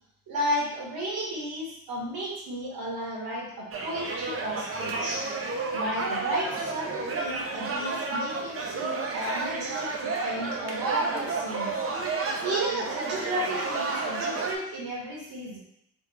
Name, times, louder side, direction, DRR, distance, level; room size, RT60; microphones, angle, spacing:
voice 1, 0.3-5.2 5.7-11.7 12.4-15.6, right 1 dB, 70° right, -4 dB, 1.6 m, -33 dB
sound 1, 3.7-14.5, right 3 dB, 40° right, 0.6 m, -31 dB
3.6 x 3.5 x 3.5 m, 0.75 s
wide cardioid pair, 160°, 37 cm